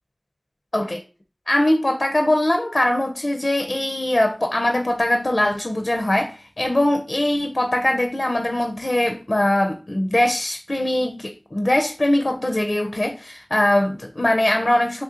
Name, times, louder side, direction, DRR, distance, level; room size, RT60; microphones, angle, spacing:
voice 1, 1.5-15.0, left 1 dB, 60° left, 0.4 m, -21 dB
3.6 x 3.1 x 2.7 m
wide cardioid pair, 45°, 0 cm